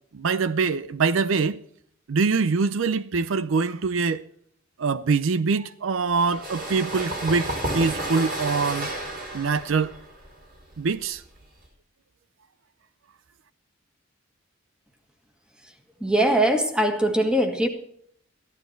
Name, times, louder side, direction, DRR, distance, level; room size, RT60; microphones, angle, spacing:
voice 1, 0.1-1.6 2.1-4.2 4.8-8.9 9.3-9.9 10.8-11.2, right 4 dB, 75° right, 0.5 m, -24 dB
sound 1, 6.2-11.7, right 1 dB, 45° right, 4.1 m, -32 dB
voice 2, 16.0-17.7, right 1 dB, 5° right, 1.6 m, -21 dB
14.5 x 12.0 x 4.5 m
head